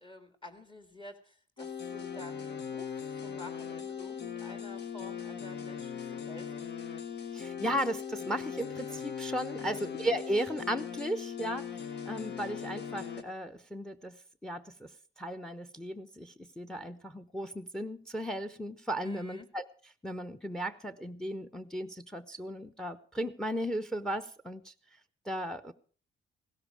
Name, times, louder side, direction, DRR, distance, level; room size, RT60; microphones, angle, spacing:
voice 1, 0.0-6.6 9.6-9.8 19.0-19.5, left 2 dB, 25° left, 7 dB, 2.2 m, -50 dB
sound 1, 1.6-13.2, left 7 dB, 60° left, 1.8 m, -39 dB
voice 2, 7.3-14.2 14.4-14.9 15.2-19.7 20.0-24.7 25.2-25.7, right 1 dB, 5° left, 13 dB, 0.8 m, -36 dB
16.5 x 12.5 x 4.8 m, 0.40 s
cardioid pair, 90°, 20 cm